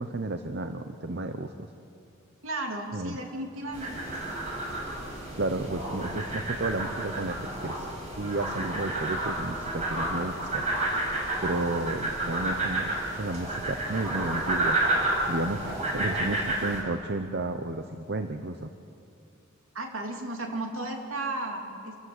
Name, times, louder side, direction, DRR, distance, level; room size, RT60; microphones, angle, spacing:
voice 1, 0.0-1.7 2.9-3.2 5.4-7.9 8.2-10.6 11.4-14.8 15.3-18.7, right 2 dB, 50° right, 7 dB, 0.8 m, -32 dB
voice 2, 2.4-4.2 19.7-22.0, right 2 dB, 70° right, 2 dB, 3.0 m, -34 dB
sound 1, 3.7-16.8, right 2 dB, 30° right, 5.6 m, -30 dB
28.0 x 14.5 x 8.0 m, 2.6 s
head